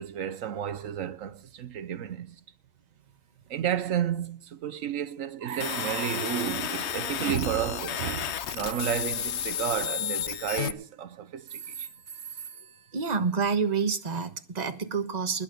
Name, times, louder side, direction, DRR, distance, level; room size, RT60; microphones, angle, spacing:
voice 1, 0.0-2.4 3.5-11.9, right 9 dB, 75° right, 1.2 m, -32 dB
sound 1, 5.5-6.8 8.5-10.9 11.5-13.8, right 7 dB, 60° right, 1.2 m, -44 dB
sound 2, 5.6-10.7, left 10 dB, 60° left, 1.0 m, -32 dB
voice 2, 12.9-15.4, right 5 dB, 35° right, 1.3 m, -28 dB
20.5 x 6.9 x 5.2 m
omnidirectional pair, 1.4 m